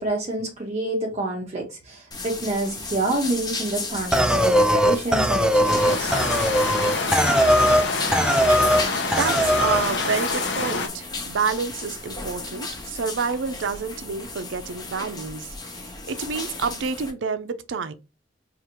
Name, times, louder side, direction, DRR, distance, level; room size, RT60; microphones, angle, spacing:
voice 1, 0.0-6.2, right 2 dB, 35° right, 0.6 m, -28 dB
sound 1, 2.1-17.1, left 3 dB, 25° left, 0.8 m, -34 dB
sound 2, 4.1-7.9 8.1-8.8 9.1-9.8, equal, 5° right, 0.3 m, -19 dB
sound 3, 5.7-10.9, left 3 dB, 70° left, 0.7 m, -27 dB
voice 2, 9.2-17.9, right 5 dB, 85° right, 0.5 m, -28 dB
4.8 x 2.4 x 2.9 m
head